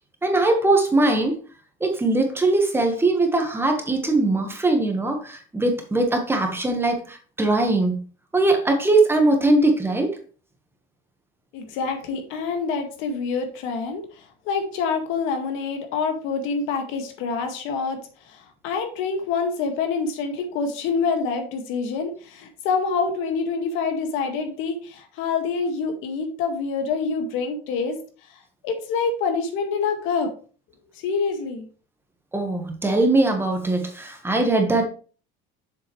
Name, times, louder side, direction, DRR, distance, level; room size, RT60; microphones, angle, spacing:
voice 1, 0.2-1.3 1.8-8.0 8.3-10.2 32.3-34.9, right 2 dB, 10° right, 4 dB, 1.4 m, -21 dB
voice 2, 11.5-28.0 28.3-30.3 30.9-31.7, left 5 dB, 70° left, 5 dB, 2.0 m, -26 dB
7.4 x 7.1 x 3.2 m, 0.39 s
cardioid pair, 135°, 21 cm